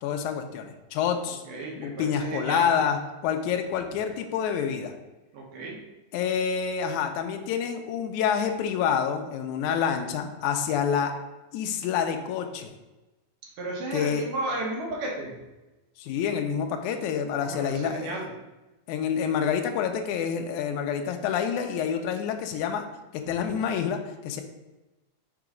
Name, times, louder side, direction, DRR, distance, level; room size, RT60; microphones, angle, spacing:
voice 1, 0.0-1.4 1.8-4.9 6.1-11.1 11.5-12.7 13.9-14.2 16.0-18.1 18.9-22.8 23.1-24.4, left 7 dB, 80° left, 5 dB, 2.0 m, -27 dB
voice 2, 1.3-2.7 5.3-5.7 13.6-15.4 17.4-18.3, right 2 dB, 85° right, -2 dB, 3.0 m, -33 dB
5.4 x 4.7 x 5.0 m, 1.0 s
omnidirectional pair, 3.6 m